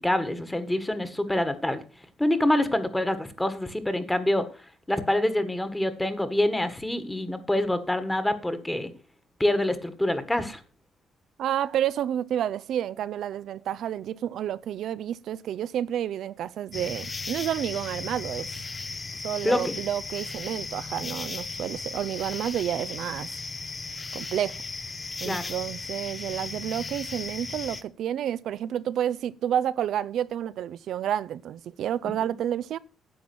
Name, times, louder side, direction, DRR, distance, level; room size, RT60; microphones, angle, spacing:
voice 1, 0.0-1.8 2.2-4.5 4.9-8.9 9.4-10.6 19.4-19.7 25.2-25.5, left 1 dB, 10° left, 1.6 m, -26 dB
voice 2, 11.4-18.6 19.2-23.4 24.1-24.6 25.2-32.8, right 10 dB, 75° right, 0.5 m, -30 dB
sound 1, 16.7-27.8, left 3 dB, 30° left, 0.9 m, -36 dB
10.5 x 7.3 x 6.1 m
cardioid pair, 90°, 0 cm